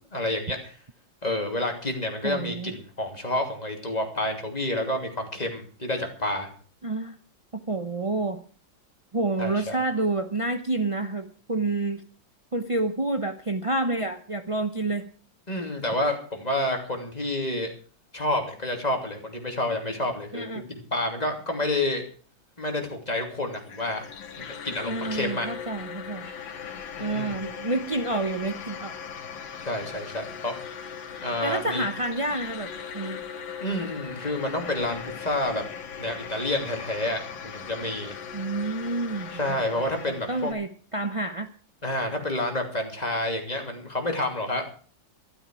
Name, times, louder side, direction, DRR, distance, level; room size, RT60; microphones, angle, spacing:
voice 1, 0.1-0.7 1.2-6.5 9.4-9.8 15.5-17.7 18.1-22.0 22.6-24.0 24.4-25.5 27.0-27.3 29.6-30.5 31.2-31.8 33.6-35.6 36.0-38.2 39.4-40.5 41.8-44.7, left 1 dB, 20° left, 3 dB, 2.9 m, -29 dB
voice 2, 2.2-2.7 6.8-7.2 7.5-8.4 9.1-12.0 12.5-15.1 20.3-20.7 24.8-26.3 27.0-28.9 31.4-33.2 38.3-41.5, right 2 dB, 40° right, 7 dB, 0.4 m, -29 dB
sound 1, 23.5-40.5, left 7 dB, 80° left, 2.2 m, -39 dB
12.5 x 12.5 x 6.3 m, 0.42 s
omnidirectional pair, 2.1 m